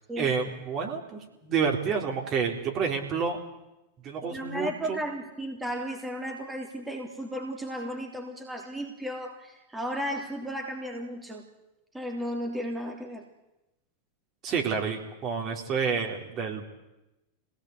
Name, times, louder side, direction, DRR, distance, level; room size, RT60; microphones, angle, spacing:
voice 1, 0.2-3.4 4.0-5.0 14.4-16.6, right 6 dB, 35° right, 2 dB, 4.1 m, -29 dB
voice 2, 4.2-11.5 11.9-13.2, equal, 5° right, 1 dB, 3.3 m, -34 dB
25.0 x 18.0 x 8.3 m, 0.97 s
figure-of-eight pair, 90°, 0 cm